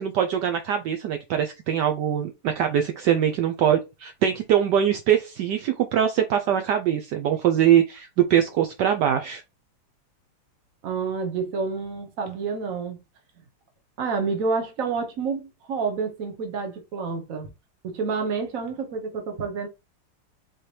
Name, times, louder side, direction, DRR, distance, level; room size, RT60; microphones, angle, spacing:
voice 1, 0.0-9.4, right 9 dB, 70° right, 1.0 m, -22 dB
voice 2, 10.8-13.0 14.0-17.5 17.8-19.7, right 5 dB, 50° right, 1.2 m, -29 dB
4.3 x 3.8 x 3.2 m
omnidirectional pair, 2.4 m